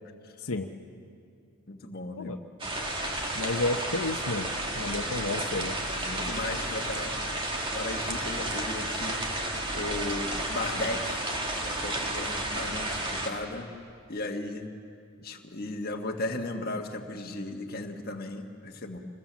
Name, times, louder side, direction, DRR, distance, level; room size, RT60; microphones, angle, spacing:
voice 1, 1.7-2.3 6.0-7.2 7.7-9.2 9.7-11.3 11.6-13.7 14.1-14.7 15.2-19.0, left 2 dB, 40° left, 3 dB, 1.6 m, -36 dB
sound 1, 2.6-13.3, right 1 dB, 20° right, 2.0 m, -32 dB
voice 2, 3.3-4.5 4.8-5.7, left 2 dB, 75° left, 3 dB, 1.1 m, -31 dB
26.5 x 22.0 x 7.5 m, 2.4 s
head